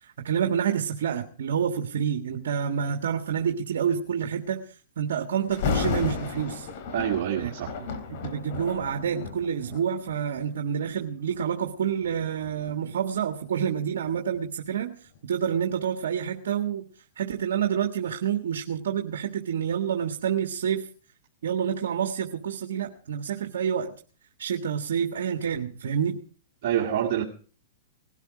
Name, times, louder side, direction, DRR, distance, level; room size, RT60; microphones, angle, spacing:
voice 1, 0.0-6.7 7.4-7.5 8.1-16.8 17.2-20.9 21.4-23.9 24.4-26.2, right 8 dB, 75° right, 6 dB, 1.6 m, -28 dB
Thunder, 5.5-10.5 11.1-11.4 12.0-14.8 15.2-15.3, left 5 dB, 55° left, 3.7 m, -33 dB
voice 2, 6.9-7.7 26.6-27.2, right 10 dB, 55° right, -3 dB, 2.5 m, -26 dB
20.0 x 13.0 x 5.0 m, 0.41 s
hypercardioid pair, 135°, 0 cm